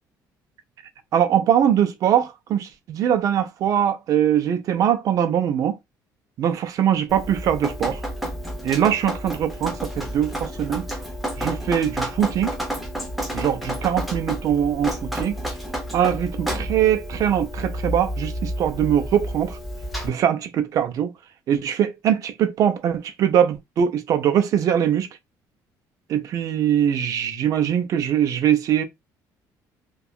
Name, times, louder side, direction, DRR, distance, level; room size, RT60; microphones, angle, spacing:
voice 1, 1.1-5.8 6.4-8.0 8.6-10.8 11.4-12.5 13.3-15.4 15.9-19.6 20.0-21.1 21.5-25.1 26.1-28.8, right 9 dB, 50° right, 0.5 m, -22 dB
Drip, 7.1-20.1, equal, ahead, 0.7 m, -30 dB
2.7 x 2.3 x 2.4 m
cardioid pair, 150°, 7 cm